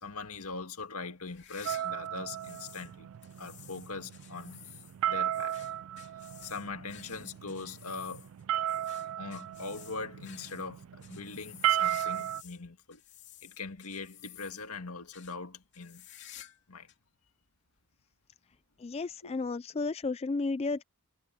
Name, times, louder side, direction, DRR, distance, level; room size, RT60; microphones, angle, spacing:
voice 1, 0.0-3.1 3.4-4.6 5.1-5.7 6.4-8.3 9.2-13.0 13.4-16.0 16.7-16.9 19.2-19.3, left 4 dB, 85° left, 1.9 m, -41 dB
sound 1, 1.2-2.9 3.2-12.6 12.9-14.8 15.1-15.4 15.7-16.6 16.9-17.0 17.8-17.9 19.1-19.2, left 12 dB, 50° left, 3.1 m, -53 dB
sound 2, 1.7-12.4, right 11 dB, 70° right, 0.3 m, -35 dB
voice 2, 18.8-20.8, left 3 dB, 25° left, 0.3 m, -33 dB
head